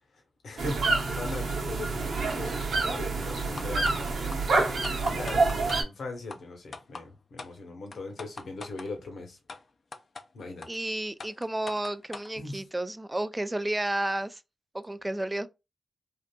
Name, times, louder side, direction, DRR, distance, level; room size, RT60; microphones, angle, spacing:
voice 1, 0.1-2.6 2.9-4.0 5.0-9.4 10.3-10.7 12.3-12.7, left 2 dB, 75° left, 1.0 m, -39 dB
sound 1, 0.6-5.8, right 3 dB, 85° right, 0.9 m, -27 dB
sound 2, 3.6-4.0 4.3-4.4 4.8-5.8 6.3-6.4 6.7-7.0 7.4-7.5 7.9-8.9 9.5-9.6 9.9-10.2 10.6-10.7 11.2-12.3, left 3 dB, 55° left, 0.5 m, -41 dB
voice 2, 10.7-14.4 14.7-15.5, right 1 dB, 15° right, 0.3 m, -31 dB
3.5 x 2.5 x 2.2 m
cardioid pair, 65°, 0 cm